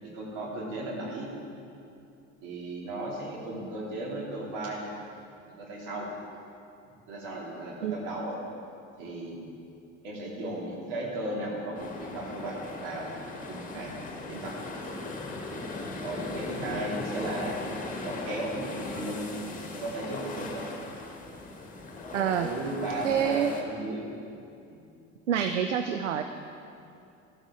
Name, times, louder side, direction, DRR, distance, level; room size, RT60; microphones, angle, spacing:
voice 1, 0.0-1.3 2.4-4.8 5.6-6.1 7.1-8.4 9.0-9.4 10.0-13.1 13.4-13.9 14.2-14.6 15.1-15.2 16.0-17.6 18.0-19.3 19.5-20.6 22.1-24.1 24.7-24.8, right 1 dB, 55° right, -3 dB, 3.1 m, -35 dB
sound 1, 11.7-23.6, left 2 dB, 20° left, 1.9 m, -39 dB
voice 2, 22.1-22.5 23.0-23.5 25.3-26.2, right 9 dB, 75° right, 8 dB, 0.6 m, -26 dB
14.5 x 13.0 x 3.8 m, 2.6 s
figure-of-eight pair, 65°, 37 cm